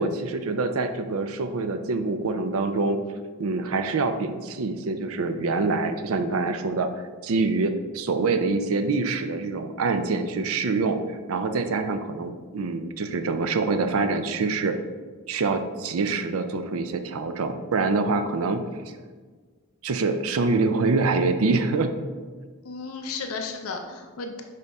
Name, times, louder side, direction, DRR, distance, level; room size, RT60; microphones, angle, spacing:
voice 1, 0.0-3.0 3.4-11.0 11.3-14.8 15.3-18.7 19.8-21.9, right 3 dB, 80° right, 8 dB, 0.5 m, -25 dB
voice 2, 22.6-24.4, left 4 dB, 80° left, 3 dB, 0.6 m, -34 dB
6.7 x 5.1 x 3.5 m, 1.5 s
head